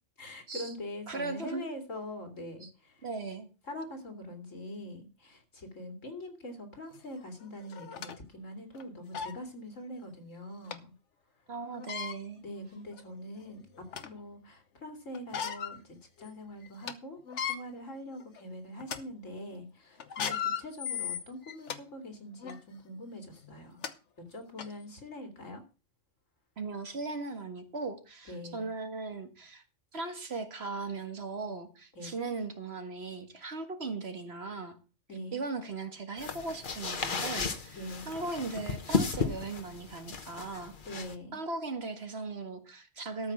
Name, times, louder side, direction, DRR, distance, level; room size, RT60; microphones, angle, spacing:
voice 1, 0.2-3.0 3.7-10.9 12.4-23.8 24.3-25.6 28.3-28.7 31.9-32.2 35.1-35.4 37.7-38.1 40.8-41.4, left 1 dB, 85° left, 4 dB, 3.0 m, -43 dB
voice 2, 1.1-1.7 2.6-2.7 3.0-3.5 11.5-12.4 26.6-29.6 29.9-34.8 35.3-37.8 38.1-40.7 41.3-43.3, right 3 dB, 55° right, 7 dB, 1.9 m, -38 dB
sound 1, 7.0-7.1 7.7-8.2 8.7-8.8 9.1-9.4 10.7-10.8 11.7-12.2 12.9-13.0 13.5-14.2 15.1-15.8 16.2-16.3 16.7-16.9 17.3-17.6 18.2-18.4 18.8-19.0 20.0-21.8 22.4-22.6 23.4-23.5 23.8-23.9 24.6-24.7, left 8 dB, 70° left, 1.3 m, -36 dB
sound 2, 36.2-41.1, left 5 dB, 45° left, 1.2 m, -34 dB
13.5 x 5.6 x 7.2 m, 0.34 s
omnidirectional pair, 1.3 m